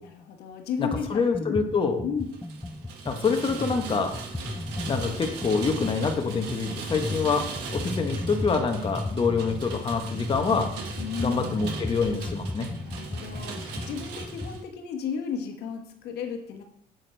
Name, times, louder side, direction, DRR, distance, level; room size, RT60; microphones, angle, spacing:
voice 1, 0.0-1.5 2.0-2.3 11.0-11.6 12.8-16.6, left 6 dB, 75° left, 4 dB, 1.3 m, -34 dB
voice 2, 0.8-2.0 3.0-4.1 4.9-7.4 7.7-10.7 11.2-12.7, left 5 dB, 30° left, 4 dB, 1.2 m, -26 dB
sound 1, 0.9-1.1 1.3-14.6, left 2 dB, 5° left, 0.6 m, -35 dB
Rain, 2.3-14.6, right 5 dB, 85° right, 1.5 m, -40 dB
8.3 x 8.0 x 3.4 m, 0.71 s
cardioid pair, 110°, 17 cm